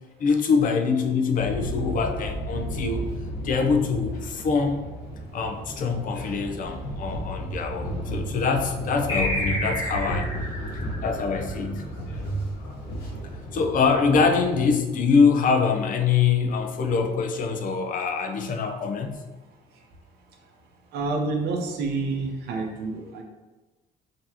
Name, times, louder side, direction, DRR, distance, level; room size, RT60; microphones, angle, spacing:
voice 1, 0.2-3.1 3.4-4.8 5.3-10.3 11.0-11.9 13.5-19.2, left 5 dB, 55° left, 5 dB, 0.6 m, -24 dB
sound 1, 1.3-14.7, equal, 80° left, 1.1 m, -33 dB
sound 2, 9.1-12.1, left 1 dB, 30° left, 1.1 m, -30 dB
voice 2, 20.9-23.2, right 3 dB, 75° right, 2 dB, 0.8 m, -28 dB
5.3 x 2.9 x 2.8 m, 1.2 s
cardioid pair, 110°, 17 cm